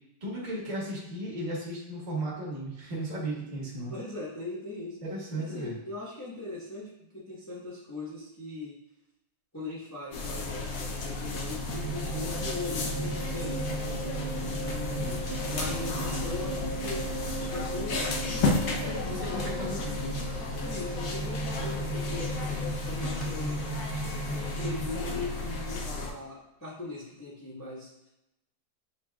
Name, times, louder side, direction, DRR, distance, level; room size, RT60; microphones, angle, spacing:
voice 1, 0.2-3.9 5.0-5.8 14.9-15.2 19.0-20.2, right 1 dB, 30° right, -7 dB, 1.0 m, -35 dB
voice 2, 3.7-5.0 5.4-8.8 9.5-14.0 14.4-15.0 15.4-19.4 20.6-22.3 22.8-23.9 24.3-27.9, left 2 dB, 15° left, -8 dB, 0.7 m, -40 dB
sound 1, 10.1-26.1, left 3 dB, 70° left, 1.2 m, -33 dB
sound 2, 11.7-24.8, right 2 dB, 85° right, 1.6 m, -36 dB
7.1 x 2.7 x 2.3 m, 0.87 s
omnidirectional pair, 2.1 m